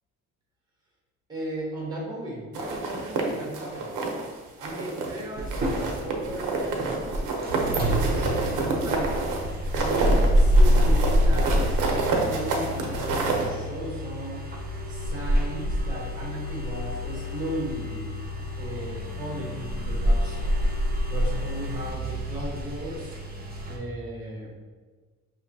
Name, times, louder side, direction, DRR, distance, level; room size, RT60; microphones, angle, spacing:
voice 1, 1.3-3.9 4.6-7.1 7.5-9.2 9.7-14.4 14.9-18.1 18.6-20.6 21.1-23.2 23.7-24.5, right 1 dB, 15° right, -4 dB, 1.3 m, -36 dB
sound 1, 2.5-4.3 4.6-5.2 5.5-13.5, right 3 dB, 85° right, 0.8 m, -28 dB
sound 2, 5.4-23.8, equal, 30° right, 0.8 m, -26 dB
5.8 x 2.8 x 2.7 m, 1.4 s
cardioid pair, 90°, 30 cm